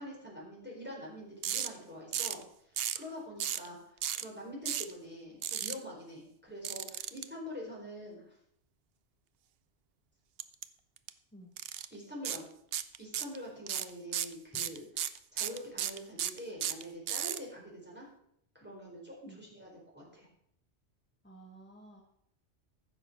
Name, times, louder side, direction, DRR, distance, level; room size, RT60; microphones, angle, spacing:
voice 1, 0.0-3.8 4.2-8.4 11.9-12.4 13.0-18.1 18.5-20.3, equal, 10° right, -3 dB, 4.3 m, -45 dB
sound 1, 1.4-1.7 2.1-2.4 2.8-3.0 3.4-3.7 4.0-4.2 4.6-4.9 5.4-5.7 6.6-7.2 10.4-10.6 11.0-11.1 11.6-11.9 12.2-12.4 12.7-13.4 13.7-17.4, right 10 dB, 65° right, 0.8 m, -34 dB
voice 2, 21.2-22.1, right 2 dB, 10° left, 0 dB, 1.3 m, -53 dB
14.5 x 6.3 x 6.0 m, 0.73 s
omnidirectional pair, 1.2 m